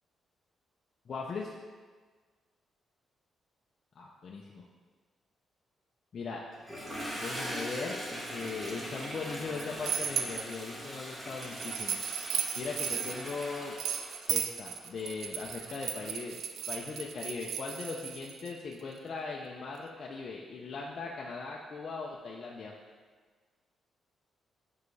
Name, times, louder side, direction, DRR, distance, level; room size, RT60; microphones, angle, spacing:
voice 1, 1.1-1.5 4.0-4.6 6.1-6.4 7.1-12.0 12.6-13.8 14.3-16.4 16.7-22.7, left 4 dB, 40° left, -2 dB, 0.5 m, -39 dB
Toilet flush, 6.5-17.1, equal, 15° right, 1.4 m, -41 dB
sound 1, 8.3-8.7 9.3-10.5 11.4-18.5, right 8 dB, 75° right, 0.4 m, -35 dB
7.4 x 4.6 x 3.3 m, 1.5 s
cardioid pair, 155°, 0 cm